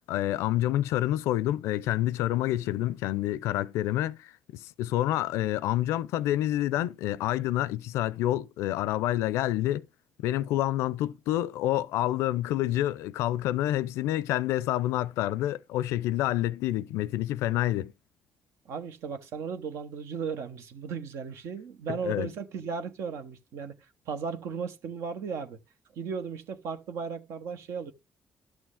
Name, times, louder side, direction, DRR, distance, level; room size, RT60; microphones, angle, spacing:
voice 1, 0.1-9.9 10.2-17.9 22.0-22.3, left 14 dB, 85° left, 0.4 m, -28 dB
voice 2, 18.7-23.8 24.1-25.6 25.9-27.9, right 6 dB, 75° right, 1.0 m, -36 dB
11.5 x 6.3 x 3.6 m
supercardioid pair, 65°, 5 cm